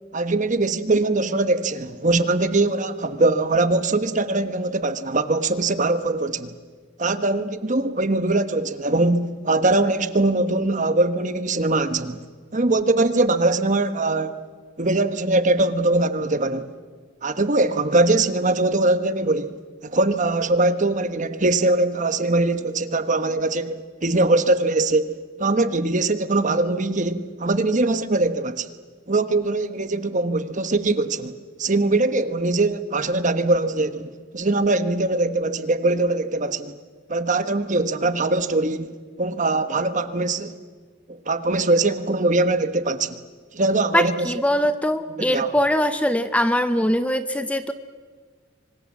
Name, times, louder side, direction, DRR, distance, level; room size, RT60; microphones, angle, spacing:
voice 1, 0.1-6.5 7.0-12.2 12.5-14.4 14.8-16.7 17.2-28.7 29.1-36.8 37.1-40.6 41.1-43.2 43.5-44.3 45.2-45.5, right 2 dB, 40° right, 1.2 m, -22 dB
voice 2, 43.9-47.7, equal, 5° left, 0.8 m, -22 dB
26.5 x 25.0 x 7.3 m
head